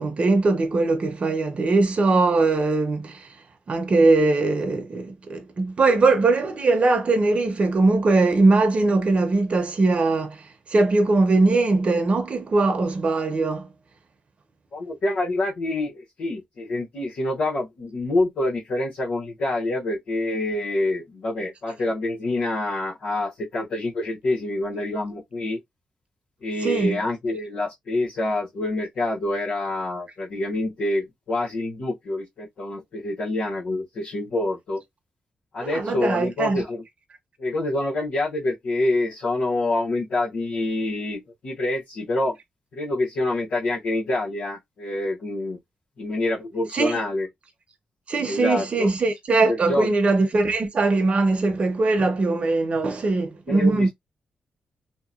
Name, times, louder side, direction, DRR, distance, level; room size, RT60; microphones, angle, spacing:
voice 1, 0.0-3.3 3.7-10.4 10.7-13.7 26.6-27.0 35.6-36.6 46.7-47.0 48.1-53.9, right 3 dB, 45° right, 0.8 m, -21 dB
voice 2, 14.7-25.6 26.4-34.8 35.5-36.8 37.4-42.4 42.7-45.6 46.0-47.3 48.2-48.9 49.5-49.9 53.5-53.9, left 2 dB, 80° left, 1.2 m, -26 dB
2.9 x 2.3 x 2.4 m
cardioid pair, 80°, 3 cm